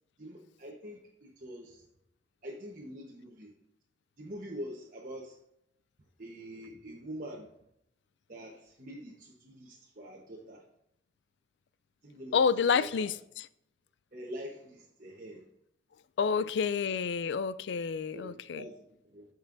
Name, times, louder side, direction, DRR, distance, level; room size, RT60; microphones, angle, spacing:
voice 1, 0.2-1.8 2.4-3.5 4.2-5.4 6.2-7.5 8.3-10.6 12.0-12.4 12.7-13.1 14.1-15.4 16.3-16.5 18.1-19.3, equal, 45° right, 1.1 m, -45 dB
voice 2, 12.3-13.5 16.2-18.6, left 6 dB, 80° left, 0.4 m, -29 dB
14.0 x 5.5 x 2.6 m
head